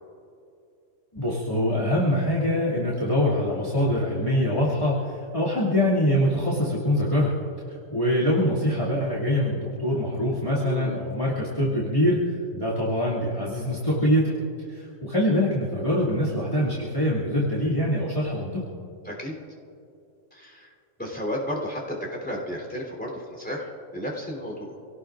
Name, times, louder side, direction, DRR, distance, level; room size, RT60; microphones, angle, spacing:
voice 1, 1.1-7.4 7.9-12.2 12.5-14.4 14.7-18.6, equal, 25° left, -9 dB, 2.7 m, -24 dB
voice 2, 10.6-11.0 19.0-19.4 20.3-20.7 21.0-24.8, equal, 5° left, -2 dB, 3.6 m, -33 dB
27.5 x 18.0 x 2.6 m, 2.7 s
omnidirectional pair, 1.3 m